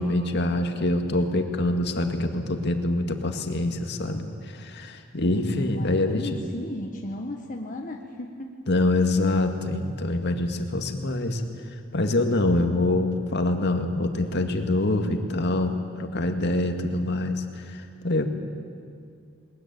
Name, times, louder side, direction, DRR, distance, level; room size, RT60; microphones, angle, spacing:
voice 1, 0.0-6.2 8.7-18.3, left 2 dB, 60° left, 5 dB, 1.9 m, -25 dB
voice 2, 5.2-8.5, left 1 dB, 40° left, 1 dB, 1.4 m, -35 dB
21.5 x 20.5 x 9.3 m, 2.4 s
head